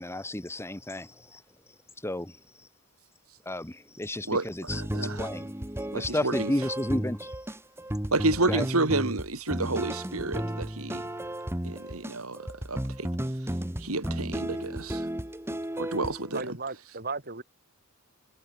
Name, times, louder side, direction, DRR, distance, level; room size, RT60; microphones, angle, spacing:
voice 1, 0.0-1.4 2.0-2.4 3.4-5.5 5.9-7.3 8.5-8.7, left 1 dB, 10° left, 1.4 m, -32 dB
voice 2, 4.3-5.3 5.9-6.5 8.1-11.1 11.6-13.1 13.8-15.1 15.8-16.4, right 2 dB, 70° right, 3.1 m, -30 dB
sound 1, 4.7-16.4, right 1 dB, 10° right, 1.5 m, -34 dB
voice 3, 16.3-17.4, right 4 dB, 45° right, 7.7 m, -35 dB
head